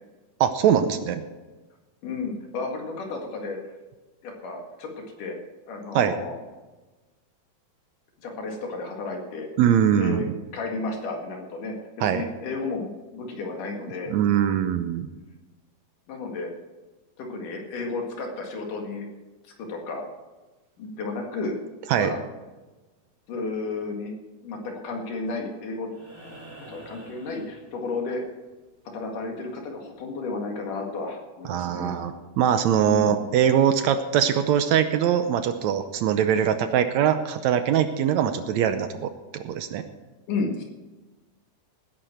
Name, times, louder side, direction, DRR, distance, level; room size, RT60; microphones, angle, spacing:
voice 1, 0.4-1.2 6.0-6.2 9.6-10.3 12.0-12.2 14.1-15.1 21.9-22.1 31.5-39.9, right 9 dB, 75° right, 9 dB, 1.9 m, -22 dB
voice 2, 2.0-3.6 4.2-4.9 5.2-5.4 5.7-6.4 8.2-9.5 10.0-10.3 10.5-11.8 12.1-14.1 16.1-16.5 17.2-19.1 19.6-20.0 20.8-21.5 22.0-22.2 23.3-24.1 24.4-25.9 26.7-28.2 28.9-32.0 32.8-33.2 40.3-40.6, left 3 dB, 85° left, 2 dB, 3.6 m, -32 dB
sound 1, 25.9-28.2 30.1-30.2, right 1 dB, 25° right, 5.7 m, -46 dB
18.5 x 10.5 x 4.5 m, 1.2 s
omnidirectional pair, 3.6 m